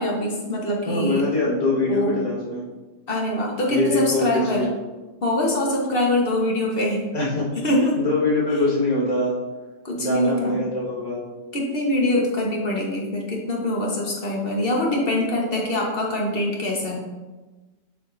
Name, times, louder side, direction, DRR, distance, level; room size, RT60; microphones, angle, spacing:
voice 1, 0.0-1.2 1.9-2.3 3.1-4.7 5.2-7.0 7.6-8.0 9.8-10.6 11.5-17.1, left 1 dB, 50° left, -2 dB, 1.4 m, -23 dB
voice 2, 0.9-2.6 3.7-4.7 7.1-7.5 8.0-9.4 10.0-11.2, left 2 dB, 35° left, -7 dB, 1.8 m, -23 dB
7.3 x 5.8 x 2.6 m, 1.2 s
omnidirectional pair, 1.3 m